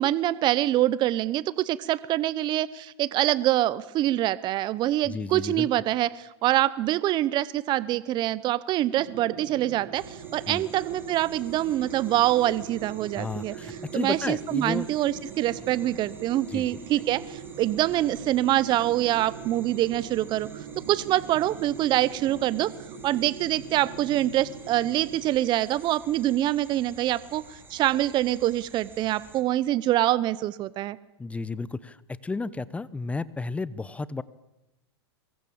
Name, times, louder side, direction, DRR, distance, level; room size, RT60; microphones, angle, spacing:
voice 1, 0.0-13.5 13.9-20.5 20.9-22.7 23.0-27.4 27.7-31.0, right 14 dB, 35° right, 19 dB, 0.8 m, -25 dB
voice 2, 5.0-5.7 10.5-10.7 13.2-14.9 16.5-16.8 31.2-34.2, left 3 dB, 10° left, 19 dB, 0.8 m, -32 dB
sound 1, 9.0-25.2, right 7 dB, 55° right, 4.0 m, -42 dB
sound 2, 9.9-29.4, right 3 dB, 15° right, 4.0 m, -51 dB
23.5 x 22.0 x 8.7 m, 0.89 s
hypercardioid pair, 125°, 14 cm